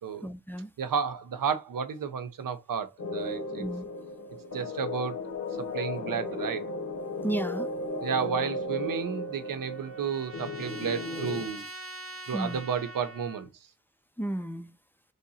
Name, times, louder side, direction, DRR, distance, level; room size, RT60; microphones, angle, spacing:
voice 1, 0.2-0.7 3.6-3.9 7.2-7.7 12.3-12.6 14.2-14.7, right 1 dB, 5° left, 0.4 m, -33 dB
voice 2, 0.8-3.6 4.5-5.3 5.7-6.6 8.0-11.7 12.3-13.5, right 6 dB, 80° right, 0.7 m, -32 dB
sound 1, 3.0-11.5, left 2 dB, 65° left, 0.9 m, -35 dB
Trumpet, 8.7-13.5, right 1 dB, 40° right, 0.8 m, -44 dB
3.4 x 2.8 x 4.0 m
wide cardioid pair, 105°, 32 cm